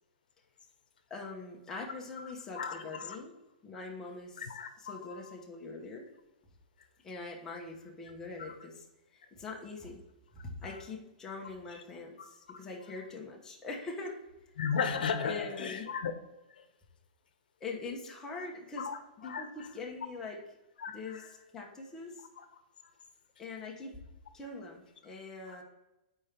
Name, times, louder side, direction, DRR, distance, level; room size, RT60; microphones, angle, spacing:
voice 1, 1.1-3.3 3.6-4.4 4.8-6.1 7.0-8.8 9.1-10.0 10.3-12.1 12.6-14.2 15.2-15.9 17.6-18.9 19.2-20.4 20.9-21.2 21.5-22.3 23.4-24.0 24.3-25.6, left 3 dB, 10° left, 0.9 m, -43 dB
voice 2, 2.2-3.2 4.4-5.3 10.6-10.7 11.7-11.8 12.2-12.3 14.6-16.1 16.5-16.6 18.8-19.4 20.8-21.3 25.5-25.6, left 6 dB, 85° left, 0.7 m, -36 dB
4.5 x 4.4 x 5.0 m
hypercardioid pair, 160°, 5 cm